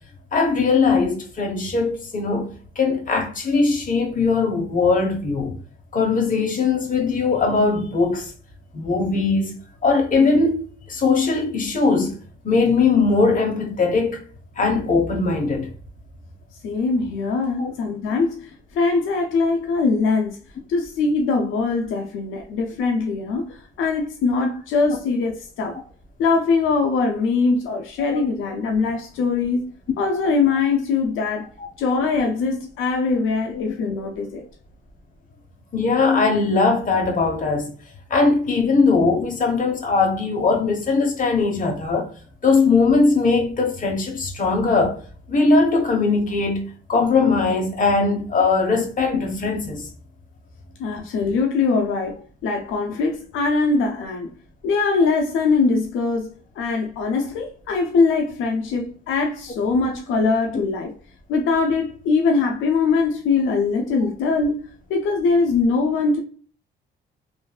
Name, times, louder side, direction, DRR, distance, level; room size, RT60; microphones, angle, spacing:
voice 1, 0.3-5.6 5.9-8.3 8.7-9.6 9.8-12.2 12.4-14.2 14.6-15.7 17.6-17.7 28.1-28.2 31.6-31.7 33.5-33.6 35.7-37.7 38.1-42.1 42.4-45.0 45.3-49.9, left 4 dB, 40° left, 1.1 m, -20 dB
voice 2, 16.6-20.4 20.7-25.8 26.2-31.5 31.8-34.4 50.8-54.3 54.6-60.9 61.3-64.6 64.9-66.2, left 4 dB, 85° left, 0.6 m, -22 dB
3.1 x 2.5 x 2.3 m
cardioid pair, 90°, 20 cm